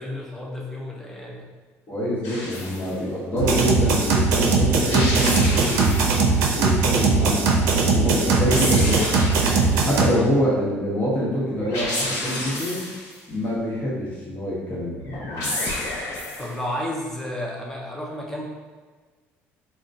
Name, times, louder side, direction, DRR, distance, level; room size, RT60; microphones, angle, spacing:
voice 1, 0.0-1.5 10.1-10.3 16.4-18.4, left 1 dB, 5° left, -2 dB, 0.5 m, -32 dB
voice 2, 1.9-6.0 6.5-9.3 9.8-12.8 13.3-15.6, equal, 30° left, -7 dB, 1.1 m, -26 dB
sound 1, 2.2-2.9 4.7-6.3 8.1-9.8 11.6-13.2 15.0-16.6, left 1 dB, 75° left, 1.1 m, -30 dB
sound 2, 3.4-10.1, right 4 dB, 90° right, 0.4 m, -20 dB
3.7 x 2.1 x 2.6 m, 1.4 s
cardioid pair, 135°, 5 cm